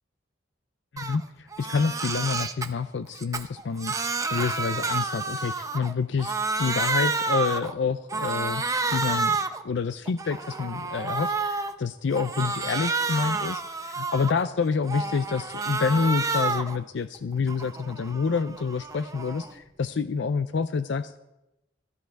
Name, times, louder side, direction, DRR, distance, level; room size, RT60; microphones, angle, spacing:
voice 1, 0.9-8.6 8.9-9.4 9.6-21.2, left 5 dB, 65° left, 12 dB, 0.4 m, -28 dB
Crying sobbing, 1.0-1.2 1.5-2.7 3.1-5.9 6.2-7.7 8.1-9.6 10.1-11.7 12.1-14.4 14.8-16.8 17.2-19.5, right 4 dB, 15° right, 0.6 m, -29 dB
13.5 x 13.0 x 4.6 m, 0.93 s
head